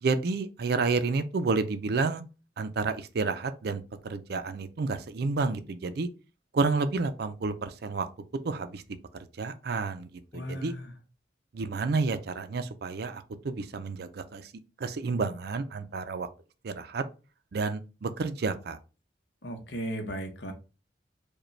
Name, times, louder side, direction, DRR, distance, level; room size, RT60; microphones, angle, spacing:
voice 1, 0.0-2.2 2.6-6.1 6.5-8.1 8.4-8.8 9.1-10.7 11.5-14.5 14.8-16.3 16.6-17.0 17.5-18.8, right 4 dB, 60° right, 0.4 m, -30 dB
voice 2, 10.3-10.9 19.4-20.5, right 1 dB, 75° left, 0.8 m, -36 dB
4.9 x 2.3 x 3.2 m
head